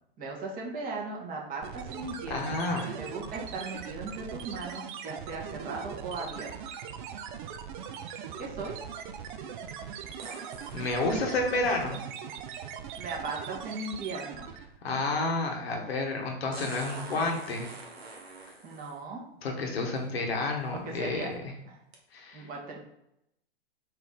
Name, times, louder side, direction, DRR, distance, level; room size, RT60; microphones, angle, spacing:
voice 1, 0.2-2.6 2.9-6.5 8.4-8.8 13.0-14.5 18.6-19.2 20.7-21.3 21.7-21.8 22.3-22.8, right 3 dB, 30° right, -1 dB, 1.3 m, -37 dB
sound 1, 1.6-14.8, right 7 dB, 55° right, 0.5 m, -41 dB
voice 2, 2.3-2.9 10.7-12.0 14.8-17.7 19.4-21.3 22.1-22.5, left 2 dB, 80° left, 1 dB, 1.1 m, -30 dB
sound 2, 10.2-11.1 13.1-13.2 16.5-19.0 20.0-20.1 20.7-21.0 21.9-22.0, right 3 dB, 85° right, 1.2 m, -44 dB
4.3 x 2.7 x 3.6 m, 0.80 s
hypercardioid pair, 110°, 30 cm